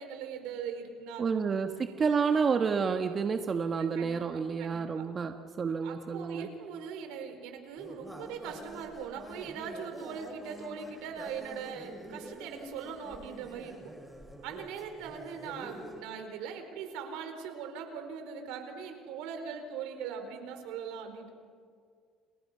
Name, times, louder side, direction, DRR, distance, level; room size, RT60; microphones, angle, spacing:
voice 1, 0.0-1.2 3.8-4.2 4.6-5.1 5.8-13.8 14.4-21.3, right 6 dB, 85° right, 6 dB, 4.4 m, -41 dB
voice 2, 1.2-6.5, right 5 dB, 35° right, 6 dB, 1.4 m, -29 dB
sound 1, 7.8-16.0, right 1 dB, ahead, 5.1 m, -47 dB
30.0 x 29.5 x 5.7 m, 2.1 s
supercardioid pair, 95°, 0 cm